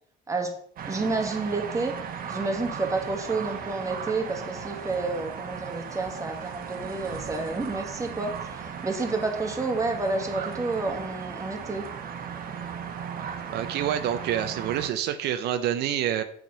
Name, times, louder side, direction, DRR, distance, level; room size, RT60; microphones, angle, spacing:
voice 1, 0.8-2.0 2.3-8.3 8.8-11.8, right 3 dB, 20° right, 4 dB, 1.6 m, -29 dB
sound 1, 0.8-14.9, right 7 dB, 60° right, 1.2 m, -37 dB
voice 2, 13.5-16.2, right 10 dB, 80° right, 9 dB, 0.6 m, -27 dB
7.7 x 5.2 x 5.4 m, 0.64 s
cardioid pair, 110°, 17 cm